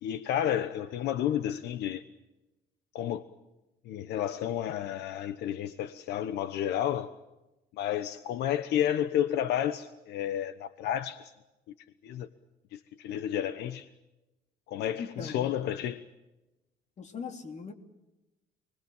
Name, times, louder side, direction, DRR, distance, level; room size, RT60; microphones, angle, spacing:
voice 1, 0.0-2.0 2.9-3.3 3.8-7.1 7.7-11.3 12.0-12.3 12.7-13.9 14.7-16.0, left 10 dB, 80° left, 1.2 m, -31 dB
voice 2, 15.0-15.5 17.0-17.7, left 5 dB, 45° left, 3.5 m, -39 dB
29.0 x 21.0 x 7.4 m
cardioid pair, 110°, 17 cm